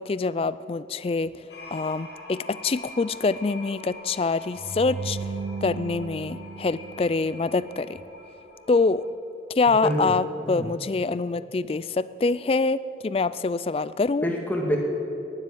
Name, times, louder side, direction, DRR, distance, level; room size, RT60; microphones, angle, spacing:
voice 1, 0.0-1.3 1.7-5.3 5.6-8.0 8.7-9.0 9.5-14.3, left 3 dB, 30° left, 16 dB, 0.3 m, -25 dB
sound 1, 1.5-9.1, left 2 dB, 75° left, 2.8 m, -45 dB
sound 2, 4.6-7.8, right 4 dB, 50° right, 0.5 m, -36 dB
voice 2, 9.7-10.2 10.4-10.7 14.2-14.8, equal, 10° left, 0 dB, 2.0 m, -26 dB
19.0 x 7.5 x 8.6 m, 2.9 s
head